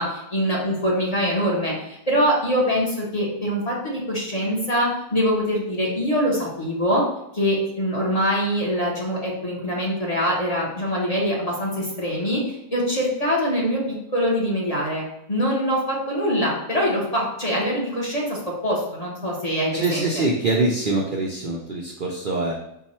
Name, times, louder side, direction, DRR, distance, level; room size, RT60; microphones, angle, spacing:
voice 1, 0.0-7.0 7.3-20.3, equal, 30° left, -4 dB, 0.9 m, -24 dB
voice 2, 19.8-22.5, right 2 dB, 80° right, -2 dB, 0.4 m, -24 dB
4.6 x 2.3 x 4.2 m, 0.82 s
omnidirectional pair, 1.6 m